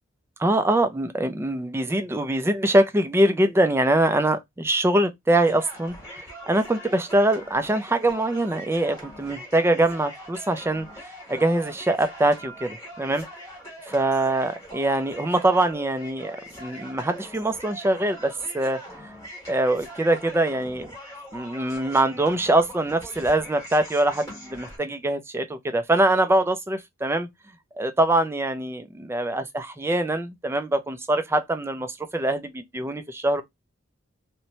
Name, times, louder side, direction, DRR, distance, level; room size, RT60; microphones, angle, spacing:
voice 1, 0.4-10.9 11.3-13.2 13.9-19.1 19.5-20.9 21.3-27.3 27.8-33.4, right 1 dB, 10° right, 0.3 m, -23 dB
sound 1, 5.5-24.8, equal, 15° left, 1.1 m, -42 dB
2.9 x 2.1 x 2.7 m
head